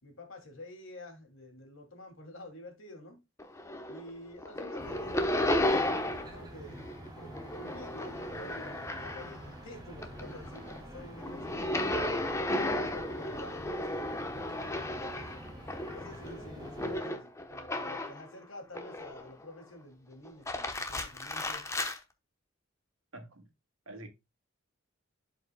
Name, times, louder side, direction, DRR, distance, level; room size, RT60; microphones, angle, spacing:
voice 1, 0.0-3.2 3.9-6.9 7.2-12.1 12.5-15.3 15.9-21.7, left 1 dB, 75° left, 2.5 m, -49 dB
sound 1, 3.4-4.1 4.4-6.4 6.7-9.5 9.9-18.3 18.7-19.4 20.2-22.0, left 1 dB, 15° left, 0.9 m, -34 dB
sound 2, 4.8-17.0, right 1 dB, 20° right, 2.5 m, -48 dB
voice 2, 23.1-23.4 23.9-24.1, right 1 dB, 85° right, 1.7 m, -46 dB
11.5 x 5.2 x 2.2 m
head